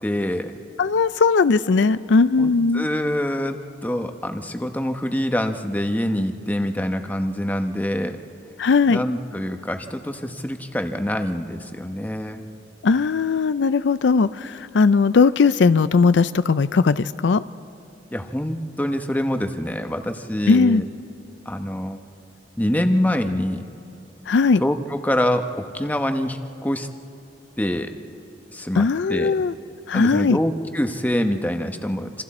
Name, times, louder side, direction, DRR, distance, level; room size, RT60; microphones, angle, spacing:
voice 1, 0.0-0.5 2.4-8.2 8.9-12.4 18.1-20.8 21.5-22.0 22.6-23.6 24.6-25.4 25.7-26.9 27.6-27.9 28.5-29.3 29.9-32.2, left 1 dB, 10° left, 6 dB, 1.0 m, -25 dB
voice 2, 0.8-2.9 8.6-9.0 12.8-17.4 20.5-20.8 24.3-24.6 28.8-29.5 29.9-30.4, left 4 dB, 80° left, 14 dB, 0.4 m, -18 dB
27.5 x 26.5 x 4.3 m, 2.8 s
head